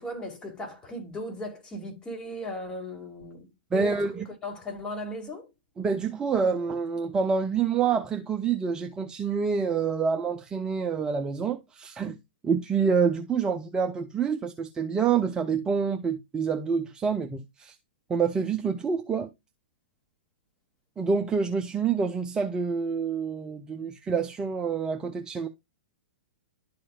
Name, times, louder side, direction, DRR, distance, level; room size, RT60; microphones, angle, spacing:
voice 1, 0.0-3.9 4.4-5.5, left 1 dB, 15° left, 2.3 m, -37 dB
voice 2, 3.7-4.3 5.8-12.2 12.4-17.8 18.1-19.3 21.0-25.5, right 6 dB, 15° right, 0.5 m, -27 dB
11.5 x 4.3 x 2.4 m
figure-of-eight pair, 110°, 6 cm